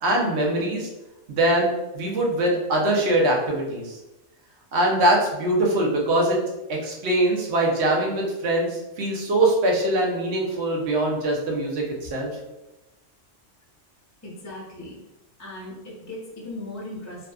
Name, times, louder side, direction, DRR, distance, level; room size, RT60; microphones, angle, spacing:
voice 1, 0.0-0.9 1.3-4.0 4.7-6.4 6.7-12.3, right 1 dB, 65° right, -2 dB, 0.9 m, -22 dB
voice 2, 14.2-15.0 15.4-17.3, left 1 dB, 25° left, -4 dB, 0.3 m, -38 dB
2.6 x 2.4 x 2.3 m, 0.99 s
omnidirectional pair, 1.3 m